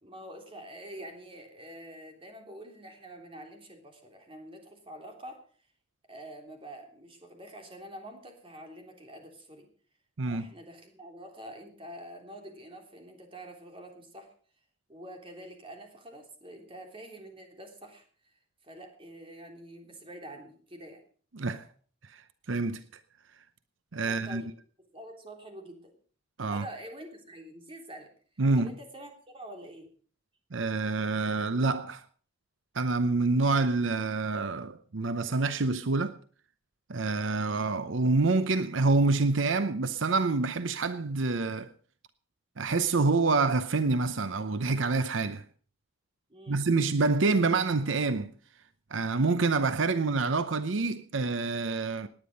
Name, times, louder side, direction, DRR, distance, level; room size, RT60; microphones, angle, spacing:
voice 1, 0.0-5.4 6.1-9.7 10.2-14.3 14.9-18.3 18.6-21.0 24.0-24.5 24.9-25.9 26.5-28.1 28.5-29.9 46.3-46.6, right 1 dB, 30° right, 3.4 m, -46 dB
voice 2, 21.3-21.7 22.1-22.2 22.5-22.8 23.9-24.4 26.4-26.7 28.4-28.7 30.5-32.0 32.7-36.1 36.9-41.7 42.6-45.4 46.5-48.3 48.9-52.1, right 3 dB, 80° right, 0.7 m, -27 dB
18.5 x 9.8 x 5.3 m
head